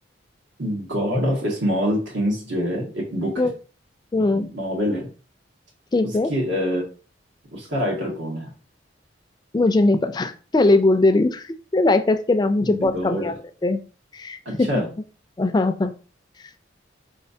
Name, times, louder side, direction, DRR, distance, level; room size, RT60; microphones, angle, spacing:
voice 1, 0.6-3.3 4.1-5.0 6.0-6.8 7.5-8.5 12.6-13.3 14.4-14.9, equal, 90° right, -1 dB, 1.6 m, -25 dB
voice 2, 4.1-4.5 5.9-6.3 9.5-13.3 13.6-13.8 14.1-14.7 15.4-15.9, left 2 dB, 20° left, 9 dB, 0.3 m, -20 dB
4.6 x 3.2 x 2.7 m, 0.36 s
head